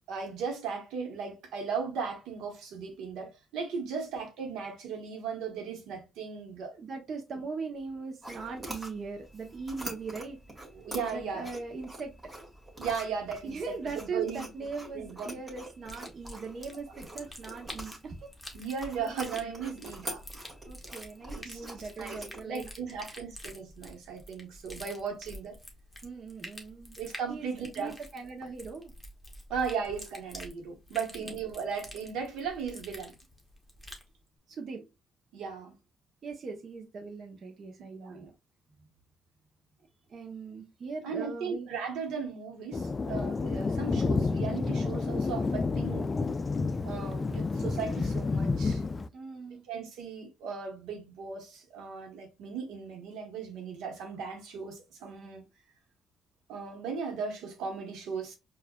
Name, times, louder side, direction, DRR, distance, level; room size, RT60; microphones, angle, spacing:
voice 1, 0.1-6.7 10.7-11.5 12.8-13.6 13.9-14.5 14.9-15.4 18.5-20.2 21.3-21.6 22.0-22.2 22.5-25.5 27.0-27.9 29.5-33.1 35.3-35.7 38.0-38.3 41.0-46.1 46.8-48.8 49.7-55.4 56.5-58.4, right 6 dB, 90° right, 1.1 m, -37 dB
voice 2, 3.8-4.1 6.7-10.4 11.1-12.1 13.4-18.3 18.6-19.6 20.7-23.2 24.7-24.9 26.0-27.0 27.3-28.9 30.9-31.4 34.5-34.9 36.2-38.3 40.1-41.7 49.1-49.6, right 4 dB, 55° right, 0.8 m, -40 dB
sound 1, 8.2-22.4, right 1 dB, 20° right, 1.7 m, -45 dB
sound 2, 15.8-34.1, left 1 dB, 5° left, 1.1 m, -47 dB
Thunder, 42.7-49.1, left 4 dB, 30° left, 0.3 m, -30 dB
4.7 x 2.5 x 2.3 m
cardioid pair, 90°, 0 cm